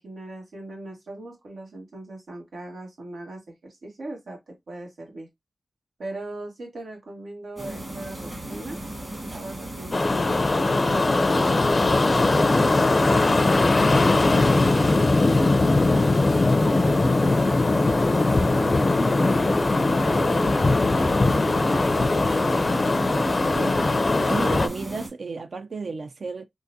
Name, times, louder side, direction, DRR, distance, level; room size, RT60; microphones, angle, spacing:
voice 1, 0.0-5.3 6.0-8.8 9.3-16.1 16.6-19.4 19.9-22.4, right 2 dB, 90° right, 1.6 m, -39 dB
sound 1, 7.6-25.1, right 1 dB, 25° right, 1.4 m, -35 dB
sound 2, 9.9-24.7, left 2 dB, 40° left, 0.4 m, -20 dB
voice 2, 23.5-26.5, right 4 dB, 65° right, 0.4 m, -33 dB
3.8 x 2.5 x 2.6 m
wide cardioid pair, 110°, 0 cm